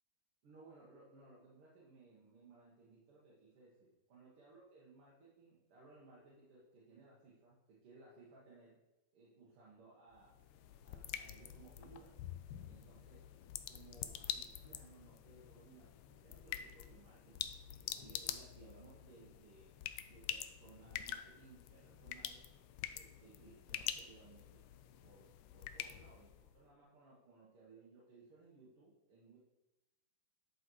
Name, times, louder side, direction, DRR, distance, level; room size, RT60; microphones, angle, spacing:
voice 1, 0.4-8.8 9.1-10.5 10.8-12.2 12.7-13.3 13.7-19.8 20.1-22.5 22.9-24.6 25.0-29.4, right 3 dB, 85° right, -6 dB, 2.3 m, -61 dB
sound 1, 10.1-26.6, left 11 dB, 80° left, 1.4 m, -47 dB
11.0 x 4.1 x 4.6 m, 1.0 s
omnidirectional pair, 2.4 m